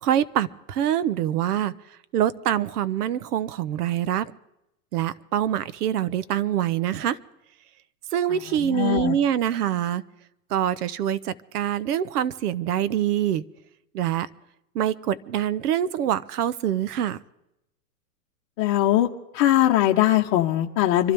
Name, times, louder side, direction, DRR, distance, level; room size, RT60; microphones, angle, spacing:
voice 1, 0.0-1.7 2.1-4.3 4.9-7.2 8.1-10.0 10.5-13.4 13.9-14.3 14.7-17.2, right 10 dB, 65° right, 1.0 m, -25 dB
voice 2, 8.5-9.2 18.6-19.1 19.3-21.1, left 13 dB, 40° left, 1.1 m, -21 dB
26.0 x 12.5 x 3.5 m
hypercardioid pair, 135°, 49 cm